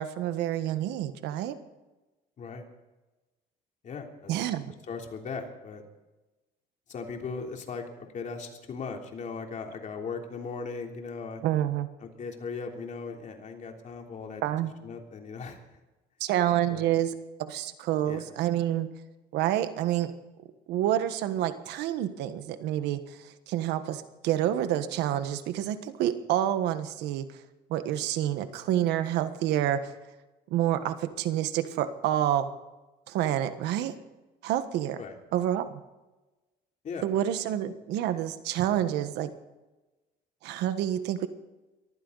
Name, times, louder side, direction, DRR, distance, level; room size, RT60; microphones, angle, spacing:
voice 1, 0.0-1.6 4.3-4.7 11.4-11.9 14.4-14.7 16.2-17.1 17.4-18.9 19.3-20.1 20.7-27.3 27.7-29.9 30.5-32.5 33.1-34.0 34.4-35.0 35.3-35.7 37.0-39.3 40.4-41.3, right 11 dB, 85° right, 10 dB, 1.4 m, -28 dB
voice 2, 3.8-4.3 4.9-5.8 6.9-11.4 12.0-14.4 14.8-15.6 16.7-16.9 18.0-18.2 35.0-35.2 36.8-37.1, left 5 dB, 45° left, 2 dB, 3.3 m, -38 dB
22.5 x 15.0 x 4.1 m, 1.1 s
cardioid pair, 110°, 17 cm